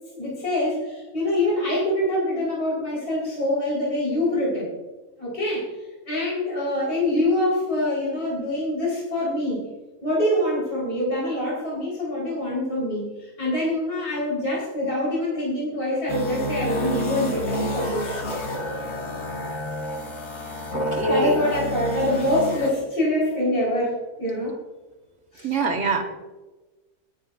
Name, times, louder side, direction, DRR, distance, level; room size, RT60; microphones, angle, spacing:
voice 1, 0.1-4.7 5.2-5.6 6.1-9.7 10.0-18.2 19.9-20.0 20.4-20.5 21.0-24.6 25.3-25.5, left 1 dB, 40° left, -6 dB, 4.5 m, -25 dB
sound 1, 16.1-22.7, left 1 dB, 75° left, 2.5 m, -30 dB
voice 2, 20.7-21.5 25.4-26.0, right 3 dB, 50° right, 3 dB, 1.7 m, -24 dB
20.5 x 9.8 x 2.5 m, 1.2 s
omnidirectional pair, 1.6 m